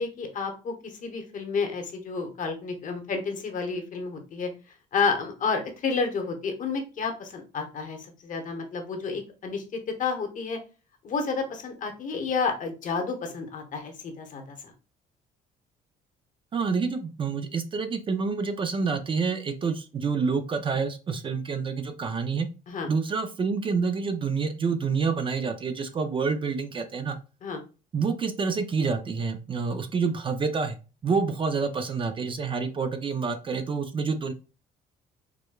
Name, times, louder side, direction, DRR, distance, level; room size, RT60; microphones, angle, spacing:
voice 1, 0.0-4.5 4.9-10.6 11.0-14.6 22.7-22.9 27.4-27.6, left 4 dB, 50° left, 4 dB, 0.9 m, -30 dB
voice 2, 16.5-22.5 22.9-27.2 27.9-30.8 31.0-34.3, right 5 dB, 30° right, 8 dB, 0.5 m, -28 dB
4.8 x 2.1 x 2.3 m, 0.32 s
cardioid pair, 110°, 17 cm